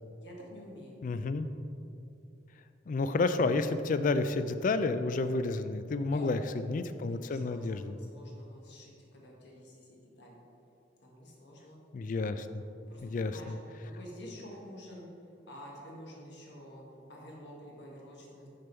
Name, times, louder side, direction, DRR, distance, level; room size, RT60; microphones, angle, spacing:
voice 1, 0.2-1.0 6.0-10.4 11.0-11.8 12.9-13.5 13.8-15.1 15.5-18.5, equal, 65° left, -2 dB, 1.5 m, -49 dB
voice 2, 1.0-1.5 2.9-6.4 6.7-8.0 11.9-12.5 13.0-13.3, left 3 dB, 45° left, 11 dB, 0.3 m, -30 dB
6.6 x 5.3 x 4.4 m, 2.6 s
head